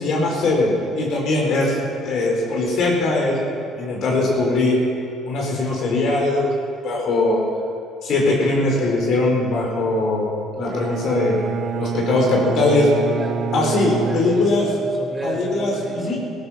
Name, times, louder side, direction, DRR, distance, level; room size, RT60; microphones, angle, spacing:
voice 1, 0.0-1.8 2.0-3.4 3.8-4.8 5.2-6.5 6.8-7.4 8.0-10.3 10.6-11.4 11.8-12.9 13.5-14.7 15.2-16.2, left 2 dB, 65° left, -1 dB, 4.7 m, -20 dB
Bowed string instrument, 10.7-14.9, right 6 dB, 60° right, 1.1 m, -27 dB
voice 2, 13.1-16.2, right 2 dB, 25° right, 1 dB, 3.9 m, -32 dB
17.5 x 14.0 x 5.9 m, 2.5 s
hypercardioid pair, 60°, 0 cm